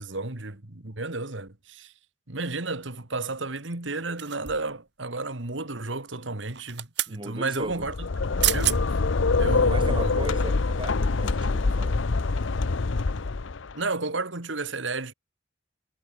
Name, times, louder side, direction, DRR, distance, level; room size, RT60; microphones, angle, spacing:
voice 1, 0.0-1.9 2.3-8.1 8.4-8.8 9.4-10.1 13.7-15.1, right 3 dB, 80° right, 2.2 m, -32 dB
sound 1, 4.2-4.8 6.5-7.2 8.1-8.2 8.4-8.8 9.3-9.5, right 15 dB, 60° right, 1.7 m, -28 dB
voice 2, 7.1-7.9 9.7-12.0, right 1 dB, 25° right, 2.6 m, -37 dB
sound 2, 7.7-13.7, left 3 dB, 85° left, 0.8 m, -25 dB
head